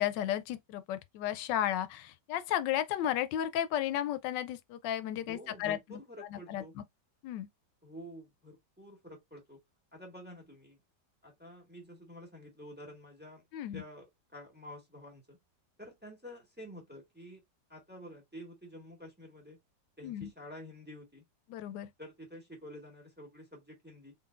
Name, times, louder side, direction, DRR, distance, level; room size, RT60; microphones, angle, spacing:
voice 1, 0.0-6.8 7.2-7.5 13.5-13.8 20.0-20.3 21.5-21.9, left 11 dB, 90° left, 1.2 m, -34 dB
voice 2, 5.3-6.7 7.8-9.6 9.9-10.8 11.2-13.4 13.7-15.4 15.8-17.4 17.7-19.6 20.0-21.2 22.0-24.1, equal, 5° right, 1.6 m, -49 dB
4.0 x 3.8 x 2.5 m
omnidirectional pair, 1.9 m